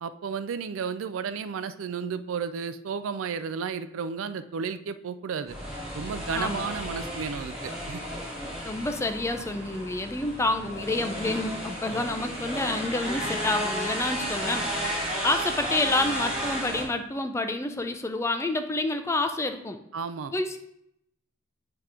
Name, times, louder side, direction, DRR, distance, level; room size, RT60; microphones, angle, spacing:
voice 1, 0.0-5.6 5.9-8.0 19.9-20.3, right 6 dB, 80° right, 12 dB, 0.4 m, -33 dB
sound 1, 5.5-16.8, equal, 5° right, 2.1 m, -33 dB
voice 2, 6.3-6.6 8.6-14.7 15.0-19.8 20.3-20.6, left 2 dB, 15° left, 7 dB, 0.4 m, -28 dB
8.0 x 2.9 x 4.9 m, 0.76 s
head